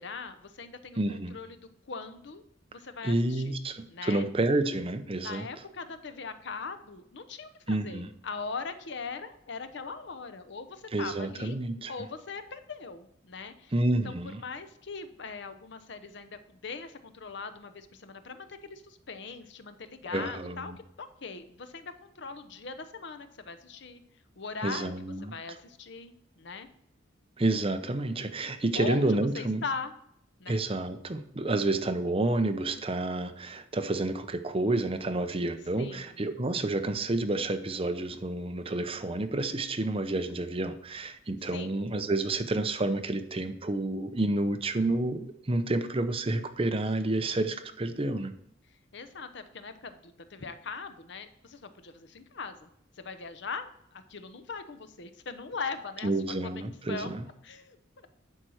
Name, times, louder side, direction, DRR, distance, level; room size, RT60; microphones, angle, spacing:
voice 1, 0.0-2.4 2.7-3.6 3.9-4.3 5.2-11.6 11.9-13.7 14.0-20.7 21.0-24.0 24.4-24.9 25.2-26.7 28.7-29.9 30.4-30.6 35.8-36.2 41.5-41.8 48.7-56.1 56.4-57.2 57.4-58.1, left 4 dB, 60° left, 10 dB, 0.8 m, -40 dB
voice 2, 1.0-1.4 3.0-5.5 7.7-8.1 10.9-11.9 13.7-14.4 20.1-20.8 24.6-25.3 27.4-29.6 30.5-48.3 56.0-57.2, right 2 dB, 30° right, 8 dB, 0.7 m, -29 dB
11.0 x 4.5 x 6.3 m, 0.72 s
head